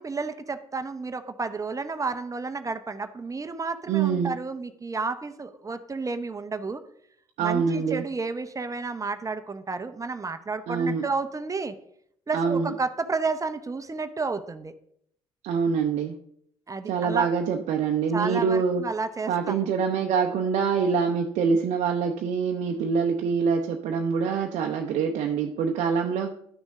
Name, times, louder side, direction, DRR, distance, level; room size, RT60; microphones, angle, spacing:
voice 1, 0.0-6.8 7.4-11.7 12.3-14.7 16.7-17.3 18.1-19.7, right 4 dB, 25° right, 10 dB, 0.8 m, -31 dB
voice 2, 3.9-4.4 7.4-8.0 10.7-11.0 12.3-12.7 15.4-16.1 16.9-18.8 19.3-26.3, right 6 dB, 60° right, 3 dB, 0.7 m, -25 dB
11.5 x 6.2 x 3.7 m, 0.70 s
figure-of-eight pair, 50°, 14 cm